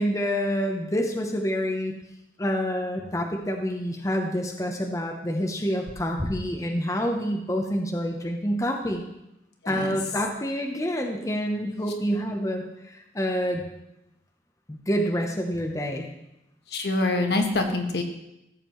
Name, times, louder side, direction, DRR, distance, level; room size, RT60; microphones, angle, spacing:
voice 1, 0.0-1.9 2.4-9.0 9.7-13.6 14.7-16.1, equal, 20° left, 2 dB, 0.8 m, -27 dB
voice 2, 9.6-10.0 16.7-18.0, left 2 dB, 65° left, 4 dB, 1.2 m, -25 dB
15.5 x 7.4 x 3.1 m, 0.88 s
head